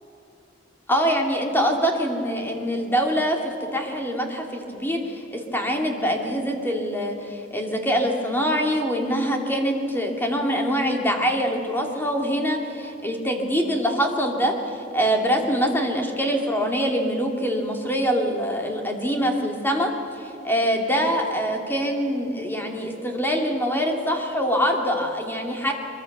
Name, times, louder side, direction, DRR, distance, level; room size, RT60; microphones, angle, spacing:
voice 1, 0.9-19.9 20.2-25.7, equal, 10° left, 2 dB, 2.7 m, -24 dB
23.0 x 23.0 x 6.7 m, 2.8 s
head